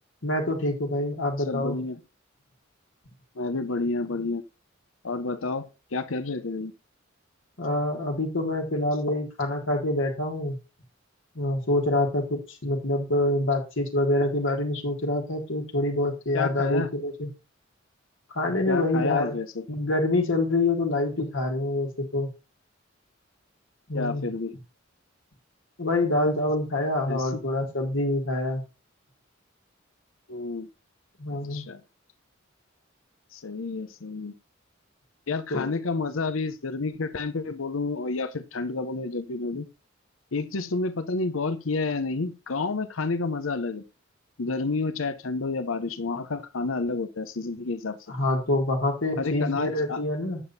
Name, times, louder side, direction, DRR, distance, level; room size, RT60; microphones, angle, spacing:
voice 1, 0.2-1.8 7.6-10.6 11.4-17.3 18.3-19.4 19.7-22.3 23.9-24.2 25.8-28.6 31.2-31.6 35.5-35.7 48.1-50.4, left 1 dB, 65° left, 1.8 m, -26 dB
voice 2, 1.5-2.0 3.4-4.4 5.0-6.7 16.3-16.9 18.7-19.6 23.9-24.6 27.1-27.4 30.3-30.7 31.5-31.8 33.3-34.3 35.3-39.7 40.3-43.8 44.4-48.0 49.2-50.0, left 3 dB, 85° left, 0.8 m, -30 dB
8.5 x 7.1 x 4.1 m
head